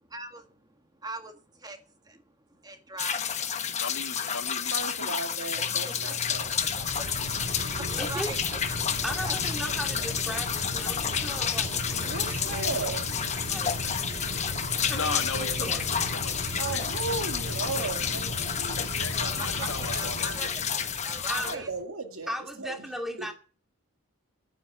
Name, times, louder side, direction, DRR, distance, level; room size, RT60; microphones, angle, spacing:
voice 1, 0.1-0.4 1.0-1.3 1.6-1.8 2.6-3.2 6.0-6.1 7.7-8.6 9.2-9.3 19.2-19.5 20.0-20.1 20.4-21.7, right 3 dB, 20° right, 6 dB, 1.7 m, -39 dB
sound 1, 3.0-21.5, left 8 dB, 30° left, 1.0 m, -30 dB
voice 2, 3.7-5.2 14.9-17.0 17.4-17.8 18.8-20.5, left 4 dB, 60° left, 8 dB, 1.5 m, -37 dB
voice 3, 4.7-6.5 7.8-7.9 12.0-13.1 16.6-18.8 19.1-20.4 21.4-22.3 22.6-22.8 23.2-23.3, right 3 dB, 65° right, 5 dB, 2.3 m, -36 dB
Mechanical fan, 5.5-21.8, right 1 dB, 90° right, 4.0 m, -37 dB
voice 4, 8.0-8.4 9.0-12.4 13.5-13.8 14.9-15.9 21.3-21.7 22.3-23.3, equal, ahead, 4 dB, 2.2 m, -37 dB
10.5 x 9.3 x 7.4 m, 0.38 s
head